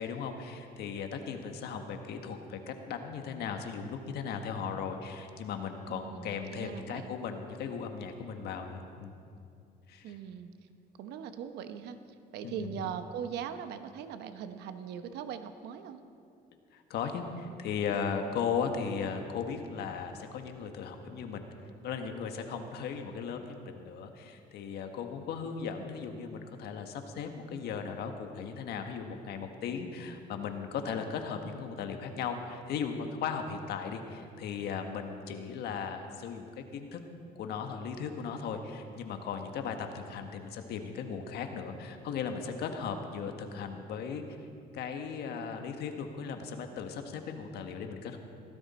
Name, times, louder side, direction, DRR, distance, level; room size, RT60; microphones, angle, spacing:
voice 1, 0.0-9.2 9.9-10.1 12.4-12.9 16.7-21.5 21.8-37.0 37.3-44.2 44.7-48.2, left 6 dB, 70° left, 5 dB, 1.5 m, -37 dB
voice 2, 5.9-7.1 10.0-10.5 11.0-12.0 12.3-16.0 17.9-18.2, right 8 dB, 80° right, 9 dB, 1.0 m, -40 dB
17.5 x 14.5 x 4.3 m, 2.4 s
cardioid pair, 110°, 17 cm